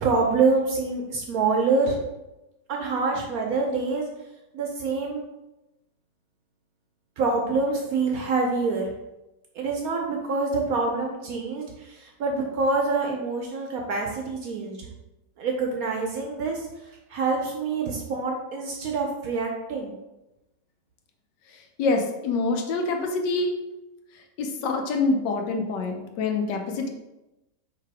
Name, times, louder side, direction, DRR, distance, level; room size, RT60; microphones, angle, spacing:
voice 1, 0.0-2.0 2.7-4.1 4.5-5.2 7.2-8.9 9.5-14.9 15.4-20.0, right 4 dB, 65° right, 1 dB, 0.9 m, -26 dB
voice 2, 21.8-23.5 24.4-26.9, left 3 dB, 75° left, 4 dB, 1.3 m, -26 dB
3.4 x 3.3 x 4.6 m, 0.97 s
omnidirectional pair, 1.9 m